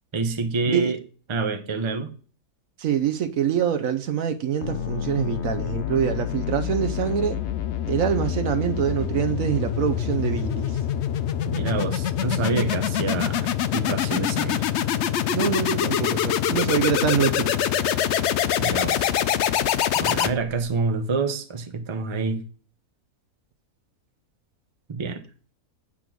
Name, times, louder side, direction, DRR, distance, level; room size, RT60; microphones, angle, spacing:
voice 1, 0.1-1.0 1.3-2.1 11.5-14.6 18.6-19.1 20.0-22.4 24.9-25.2, right 4 dB, 25° right, 0.7 m, -27 dB
voice 2, 2.8-7.4 7.9-10.8 15.3-17.5, right 8 dB, 65° right, 1.1 m, -25 dB
sound 1, 4.6-20.7, left 10 dB, 70° left, 0.7 m, -25 dB
8.6 x 3.7 x 6.1 m
omnidirectional pair, 1.6 m